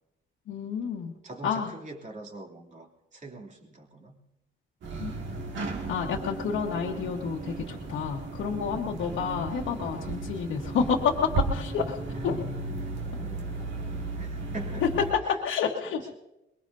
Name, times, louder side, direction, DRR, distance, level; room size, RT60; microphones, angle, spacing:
voice 1, 0.5-1.1 1.4-1.7 5.0-5.1 5.9-12.0 12.2-12.4 15.3-16.0, left 6 dB, 80° left, -2 dB, 1.4 m, -29 dB
voice 2, 1.2-4.2 6.6-6.8 8.8-9.1 12.1-12.3 12.8-15.4 15.8-16.1, right 2 dB, 40° right, 0 dB, 3.0 m, -45 dB
sound 1, 4.8-15.1, right 3 dB, 70° right, 2.2 m, -35 dB
23.0 x 21.5 x 2.7 m, 0.92 s
cardioid pair, 90°, 20 cm